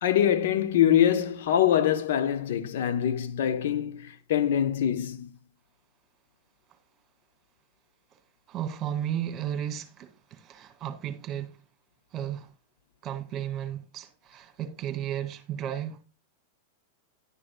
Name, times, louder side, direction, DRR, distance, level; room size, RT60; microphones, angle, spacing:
voice 1, 0.0-5.3, left 10 dB, 70° left, 0.9 m, -24 dB
voice 2, 8.5-11.6 12.1-12.5 13.0-16.0, right 10 dB, 35° right, 2.0 m, -34 dB
11.0 x 10.0 x 2.3 m
hypercardioid pair, 105°, 0 cm